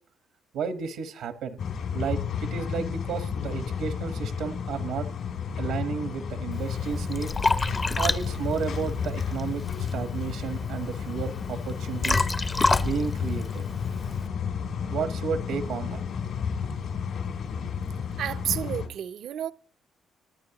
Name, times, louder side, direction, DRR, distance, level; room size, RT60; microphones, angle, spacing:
voice 1, 0.5-1.6 1.9-5.1 5.6-7.3 8.0-9.6 9.9-12.3 12.8-13.6 14.9-16.0, right 6 dB, 85° right, 1.2 m, -32 dB
sound 1, 1.6-18.9, left 6 dB, 70° left, 2.5 m, -32 dB
Liquid, 6.5-14.3, left 3 dB, 25° left, 0.6 m, -29 dB
voice 2, 18.2-19.5, right 10 dB, 70° right, 0.5 m, -31 dB
25.5 x 9.5 x 2.9 m
cardioid pair, 95°, 0 cm